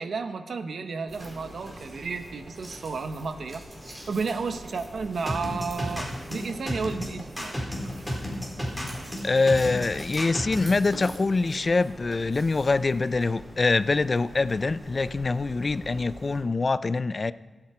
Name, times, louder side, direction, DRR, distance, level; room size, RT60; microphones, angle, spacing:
voice 1, 0.0-3.6 4.1-7.6, right 4 dB, 80° right, 8 dB, 1.0 m, -32 dB
sound 1, 1.1-16.4, equal, 25° right, 4.7 m, -44 dB
sound 2, 5.3-10.7, equal, ahead, 3.9 m, -31 dB
voice 2, 9.2-17.3, left 3 dB, 40° left, 15 dB, 0.4 m, -24 dB
24.0 x 8.8 x 4.4 m, 1.3 s
wide cardioid pair, 90°, 0 cm